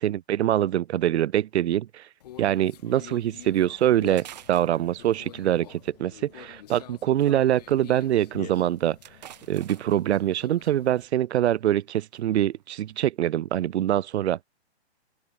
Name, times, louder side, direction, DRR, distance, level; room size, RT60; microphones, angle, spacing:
voice 1, 0.0-2.0 2.4-9.0 9.5-14.4, right 12 dB, 75° right, 0.5 m, -24 dB
Conversation, 2.2-11.0, left 12 dB, 35° left, 3.8 m, -47 dB
sound 1, 3.7-5.5 6.8-7.3 7.7-7.8 8.0-8.1 8.5-10.1 11.1-11.3 11.8-12.2 12.6-12.9, right 11 dB, 40° right, 2.8 m, -49 dB
open air
hypercardioid pair, 170°, 34 cm